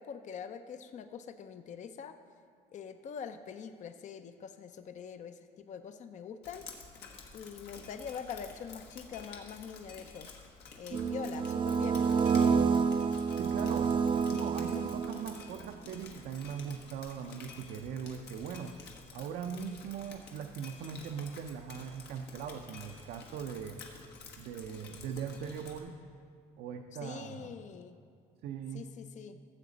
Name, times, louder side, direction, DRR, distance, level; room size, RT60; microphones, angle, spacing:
voice 1, 0.0-2.2 2.7-6.7 7.3-10.3 10.8-12.0 27.0-28.0 28.7-29.4, left 7 dB, 45° left, 9 dB, 0.6 m, -44 dB
Drip, 6.4-25.8, left 5 dB, 75° left, 1.4 m, -51 dB
sound 1, 10.9-15.6, right 6 dB, 30° right, 0.4 m, -29 dB
voice 2, 13.4-13.9 14.3-18.7 19.1-23.8 24.4-26.0 26.6-27.5 28.4-28.8, right 7 dB, 75° right, 4 dB, 0.6 m, -40 dB
14.0 x 7.4 x 4.0 m, 2.2 s
cardioid pair, 110°, 17 cm